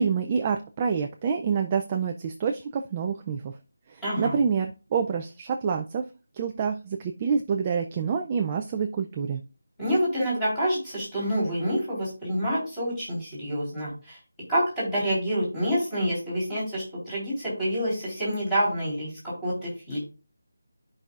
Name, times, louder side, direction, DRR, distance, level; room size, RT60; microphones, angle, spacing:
voice 1, 0.0-3.6 3.9-6.1 6.3-9.4, right 6 dB, 15° right, 4 dB, 0.3 m, -27 dB
voice 2, 4.0-4.4 9.8-14.2 14.5-20.0, equal, 5° left, -11 dB, 3.6 m, -27 dB
12.5 x 5.3 x 2.4 m, 0.33 s
figure-of-eight pair, 180°, 0 cm